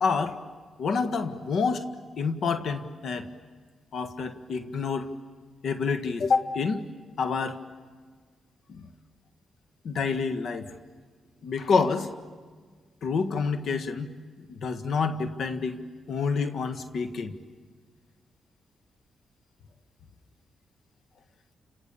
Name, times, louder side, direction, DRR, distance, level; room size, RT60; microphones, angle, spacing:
voice 1, 0.0-0.4 0.8-1.8 2.2-3.3 3.9-5.1 5.6-6.9 7.2-7.6 8.7-8.9 9.8-10.7 11.4-12.1 13.0-14.1 14.5-15.8 16.1-17.3, left 5 dB, 70° left, 10 dB, 1.7 m, -28 dB
29.5 x 27.5 x 7.1 m, 1.5 s
cardioid pair, 65°, 0 cm